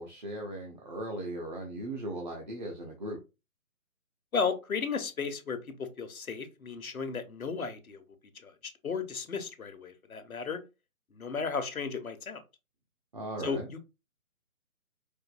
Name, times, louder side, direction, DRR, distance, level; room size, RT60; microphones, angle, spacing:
voice 1, 0.0-3.2 13.1-13.7, right 1 dB, 30° right, 0.7 m, -38 dB
voice 2, 4.3-8.0 8.4-8.5 8.8-10.6 11.1-12.4 13.4-13.8, left 5 dB, 75° left, 1.0 m, -34 dB
4.5 x 2.6 x 2.5 m
figure-of-eight pair, 145°, 43 cm